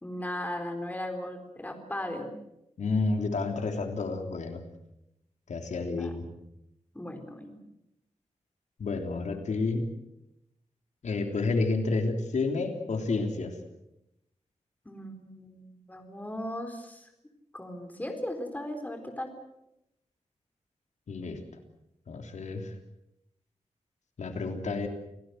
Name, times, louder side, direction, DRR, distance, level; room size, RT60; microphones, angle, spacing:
voice 1, 0.0-2.3 6.0-6.1 6.9-7.6 14.9-17.1 17.5-19.3, left 1 dB, 15° left, 5 dB, 4.1 m, -37 dB
voice 2, 2.8-4.6 5.5-6.3 8.8-9.9 11.0-13.5 21.1-21.4 22.1-22.7 24.2-24.9, left 3 dB, 85° left, 5 dB, 3.4 m, -30 dB
28.5 x 18.0 x 7.9 m, 0.86 s
wide cardioid pair, 125°, 12 cm